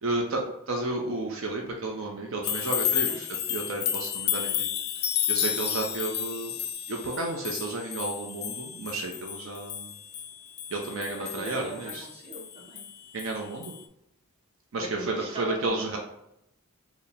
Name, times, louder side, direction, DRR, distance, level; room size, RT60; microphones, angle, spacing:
voice 1, 0.0-4.7 5.3-6.5 6.9-9.9 10.7-12.1 13.1-13.7 14.7-16.0, right 2 dB, 60° right, 1 dB, 0.5 m, -32 dB
sound 1, 2.4-13.4 13.6-13.8, left 10 dB, 45° left, 0.3 m, -32 dB
voice 2, 11.2-12.8 14.8-16.0, right 1 dB, 25° right, -2 dB, 0.8 m, -40 dB
4.5 x 2.0 x 3.3 m, 0.82 s
head